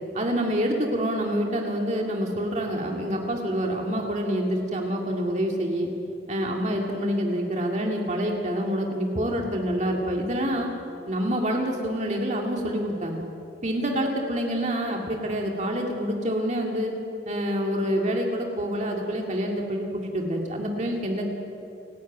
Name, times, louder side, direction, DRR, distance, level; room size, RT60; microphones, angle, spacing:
voice 1, 0.1-5.9 6.3-10.7 11.1-13.3 13.6-16.9 17.3-21.3, equal, 40° right, 1 dB, 2.4 m, -27 dB
30.0 x 13.0 x 9.4 m, 2.9 s
head